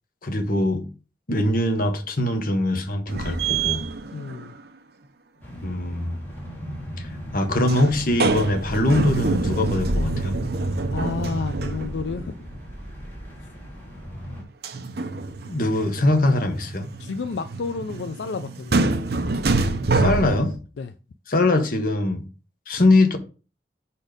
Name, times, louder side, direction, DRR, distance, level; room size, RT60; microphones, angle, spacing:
voice 1, 0.2-0.9 1.3-3.8 5.6-6.1 7.0-10.3 15.5-16.9 19.9-20.5 21.3-22.2 22.7-23.2, left 2 dB, 50° left, 1.2 m, -22 dB
sound 1, 3.1-4.6 7.7-12.3 14.6-20.6, right 3 dB, 60° right, 0.7 m, -26 dB
voice 2, 4.1-4.5 8.7-8.8 10.9-12.3 17.0-18.9 20.8-20.9 22.8-22.9, left 4 dB, 80° left, 0.4 m, -31 dB
sound 2, 5.4-14.4, equal, 10° left, 2.2 m, -37 dB
6.0 x 4.3 x 5.1 m
head